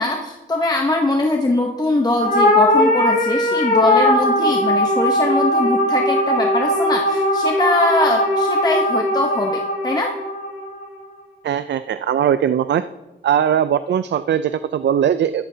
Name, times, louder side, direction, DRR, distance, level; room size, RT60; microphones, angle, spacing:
voice 1, 0.0-10.1, left 2 dB, 20° left, 2 dB, 0.9 m, -22 dB
sound 1, 2.2-10.8, left 1 dB, 50° left, 3.5 m, -19 dB
voice 2, 11.4-12.9 13.2-15.4, right 9 dB, 65° right, 13 dB, 0.4 m, -19 dB
13.5 x 12.5 x 2.8 m, 1.1 s
cardioid pair, 90°, 20 cm